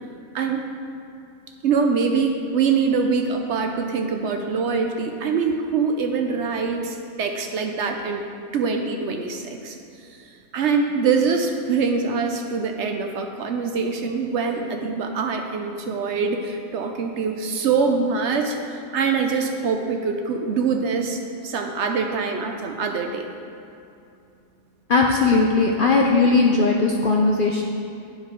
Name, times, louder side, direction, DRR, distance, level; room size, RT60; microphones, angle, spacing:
voice 1, 1.6-8.3 8.5-9.8 10.5-23.3, right 5 dB, 65° right, 4 dB, 0.8 m, -24 dB
voice 2, 24.9-27.6, left 3 dB, 55° left, 0 dB, 0.6 m, -18 dB
10.5 x 4.8 x 4.4 m, 2.6 s
omnidirectional pair, 1.4 m